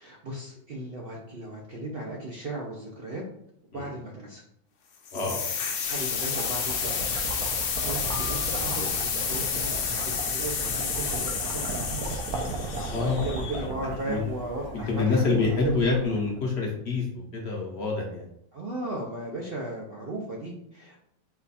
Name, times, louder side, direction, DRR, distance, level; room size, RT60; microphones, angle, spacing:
voice 1, 0.0-3.2 3.7-4.4 5.9-7.0 7.5-12.2 13.0-15.9 18.5-21.0, right 2 dB, 55° right, -2 dB, 0.6 m, -36 dB
sound 1, 5.1-13.9, left 6 dB, 80° left, 0.5 m, -30 dB
voice 2, 5.1-5.4 12.9-13.2 13.5-14.2 14.7-17.0 17.3-18.2, left 3 dB, 55° left, -1 dB, 0.8 m, -27 dB
sound 2, 5.6-16.8, right 2 dB, 75° right, 1.2 m, -36 dB
4.4 x 2.3 x 4.1 m, 0.74 s
omnidirectional pair, 1.6 m